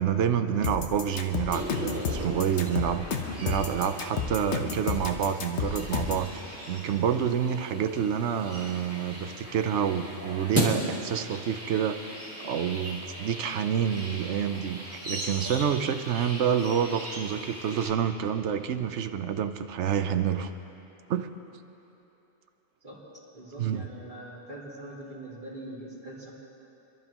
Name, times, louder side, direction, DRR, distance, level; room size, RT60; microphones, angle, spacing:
voice 1, 0.0-3.1 3.4-6.3 6.7-12.0 12.4-20.5 21.1-21.3 23.6-23.8, right 8 dB, 85° right, 9 dB, 1.0 m, -28 dB
sound 1, 0.6-6.3, left 5 dB, 85° left, 1.3 m, -31 dB
sound 2, 1.5-17.9, equal, 10° right, 2.5 m, -37 dB
voice 2, 23.3-26.3, right 1 dB, 45° right, -10 dB, 3.7 m, -42 dB
26.0 x 12.0 x 3.0 m, 3.0 s
omnidirectional pair, 1.2 m